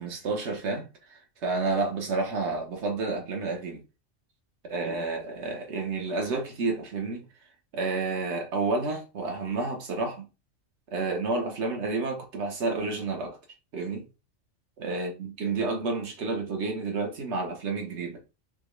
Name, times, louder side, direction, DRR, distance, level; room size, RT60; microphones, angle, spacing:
voice 1, 0.0-3.8 4.6-7.3 7.7-10.3 10.9-13.4 13.7-14.1 14.8-18.2, right 3 dB, 70° right, 1.4 m, -30 dB
5.9 x 2.2 x 3.1 m
omnidirectional pair, 1.2 m